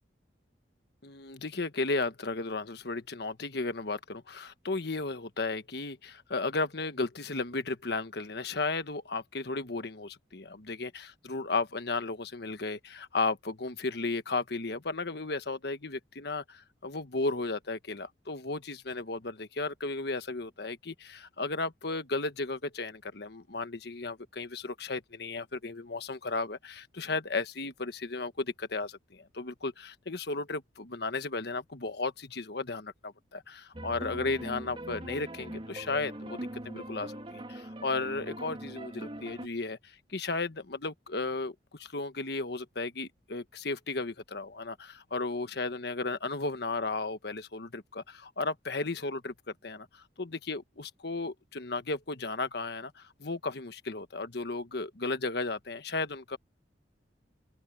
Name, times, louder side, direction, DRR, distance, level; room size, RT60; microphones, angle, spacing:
voice 1, 1.0-49.3 49.6-56.4, left 3 dB, 65° left, 1.4 m, -34 dB
sound 1, 33.7-39.5, right 1 dB, 30° right, 2.4 m, -41 dB
open air
head